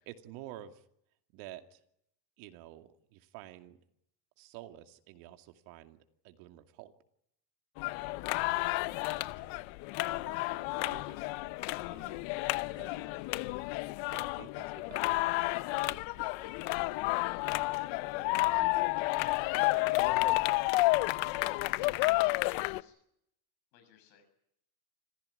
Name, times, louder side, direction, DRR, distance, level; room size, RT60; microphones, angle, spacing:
voice 1, 0.1-0.9 1.3-1.8 2.4-3.8 4.4-6.9 8.1-8.9 9.2-11.5 11.9-12.3 12.8-13.7 14.1-16.5, right 13 dB, 70° right, 6 dB, 2.5 m, -52 dB
voice 2, 7.8-8.1 17.0-17.3 17.5-20.1 21.2-21.7 22.1-23.0 23.7-24.2, left 7 dB, 85° left, 7 dB, 7.1 m, -57 dB
sound 1, 7.8-22.8, left 21 dB, 65° left, 0.9 m, -31 dB
25.5 x 15.5 x 9.8 m, 0.77 s
supercardioid pair, 115°, 49 cm